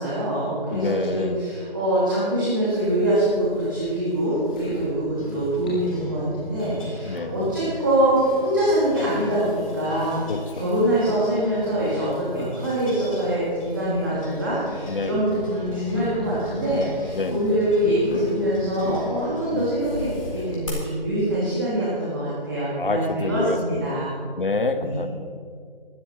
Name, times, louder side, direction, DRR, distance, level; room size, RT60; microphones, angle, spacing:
voice 1, 0.0-10.2 10.5-24.2 24.8-25.1, right 1 dB, 20° right, -9 dB, 2.6 m, -24 dB
voice 2, 0.7-1.4 7.1-7.5 10.3-10.7 14.9-15.3 17.1-17.6 22.8-24.0 24.4-25.1, left 3 dB, 60° left, 9 dB, 1.2 m, -27 dB
sound 1, 2.7-20.5, equal, 10° left, 1.3 m, -39 dB
sound 2, 4.2-20.7, left 1 dB, 35° left, 4.3 m, -40 dB
17.0 x 12.5 x 4.5 m, 2.2 s
figure-of-eight pair, 170°, 29 cm